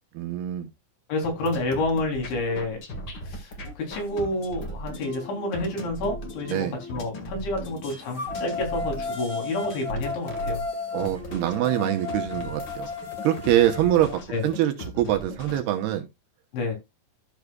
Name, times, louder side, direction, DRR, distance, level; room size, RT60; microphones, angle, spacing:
voice 1, 0.2-0.7 6.5-6.8 10.9-12.9 13.2-16.1, right 12 dB, 75° right, 2.6 m, -24 dB
voice 2, 1.1-2.8 3.3-10.6 14.3-14.4 16.5-16.8, left 2 dB, 80° left, 5.6 m, -29 dB
sound 1, 1.2-15.6, equal, 65° left, 1.1 m, -38 dB
sound 2, 4.3-4.4 5.0-6.9 8.1-14.2, left 3 dB, 10° left, 1.7 m, -35 dB
13.5 x 6.6 x 2.3 m
omnidirectional pair, 5.2 m